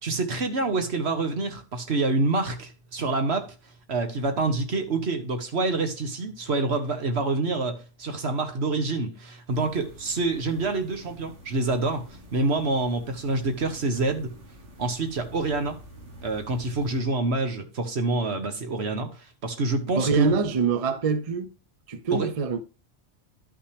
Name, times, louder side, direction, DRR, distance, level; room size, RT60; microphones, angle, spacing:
voice 1, 0.0-3.5 3.9-12.0 12.3-14.3 14.8-15.8 16.2-20.3 22.1-22.3, right 3 dB, 65° right, 1.5 m, -27 dB
sound 1, 9.5-17.0, right 1 dB, 80° right, 2.1 m, -47 dB
voice 2, 20.0-21.5 21.9-22.6, right 5 dB, 40° right, 0.6 m, -25 dB
11.0 x 5.7 x 3.4 m
omnidirectional pair, 1.2 m